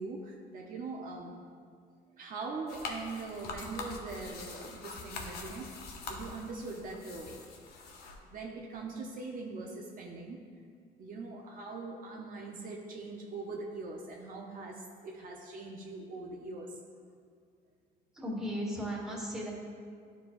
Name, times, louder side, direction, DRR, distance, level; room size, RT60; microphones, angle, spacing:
voice 1, 0.0-1.4 2.2-5.7 6.1-7.5 8.2-10.5 11.0-16.8, right 3 dB, 55° right, -1 dB, 0.8 m, -42 dB
sound 1, 2.7-8.2, left 3 dB, 70° left, 0.9 m, -44 dB
voice 2, 18.1-19.5, equal, 5° right, -4 dB, 1.5 m, -36 dB
11.5 x 4.7 x 2.6 m, 2.2 s
cardioid pair, 110°, 17 cm